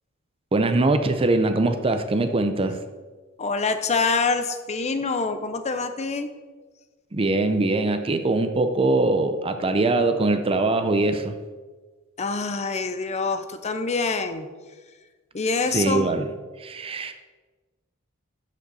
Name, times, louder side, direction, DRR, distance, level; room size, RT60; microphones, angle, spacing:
voice 1, 0.5-2.7 7.1-11.4 15.7-16.2 16.6-17.1, right 2 dB, 25° right, 8 dB, 0.5 m, -22 dB
voice 2, 3.4-6.3 12.2-14.5 15.3-16.1, left 4 dB, 30° left, 9 dB, 0.5 m, -25 dB
12.0 x 5.2 x 4.0 m, 1.4 s
head